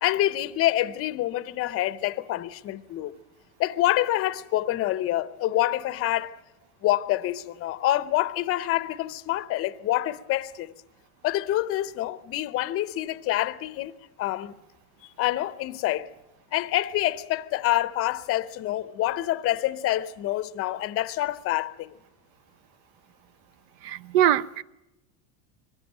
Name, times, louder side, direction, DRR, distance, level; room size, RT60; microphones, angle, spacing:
voice 1, 0.0-3.2 3.6-6.4 6.8-10.7 11.2-13.9 14.2-14.5 15.2-16.1 16.5-22.0, left 15 dB, 30° left, 0.7 m, -26 dB
voice 2, 23.8-24.6, right 12 dB, 55° right, 0.8 m, -22 dB
22.5 x 16.0 x 9.0 m
cardioid pair, 160°, 43 cm